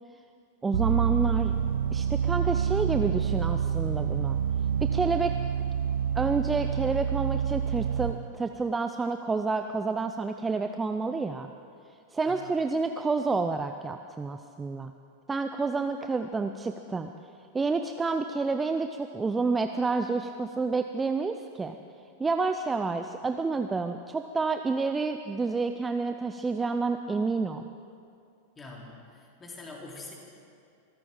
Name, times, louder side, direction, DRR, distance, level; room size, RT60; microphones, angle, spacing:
voice 1, 0.6-1.5 1.9-4.4 4.8-5.4 6.1-11.5 12.1-14.9 15.3-17.1 17.5-21.8 22.2-27.7, right 4 dB, 15° right, 7 dB, 0.5 m, -29 dB
sound 1, 0.7-8.1, right 8 dB, 65° right, 0.6 m, -27 dB
voice 2, 28.5-30.1, left 3 dB, 15° left, -2 dB, 3.4 m, -44 dB
24.0 x 14.0 x 3.8 m, 2.5 s
figure-of-eight pair, 90°, 0 cm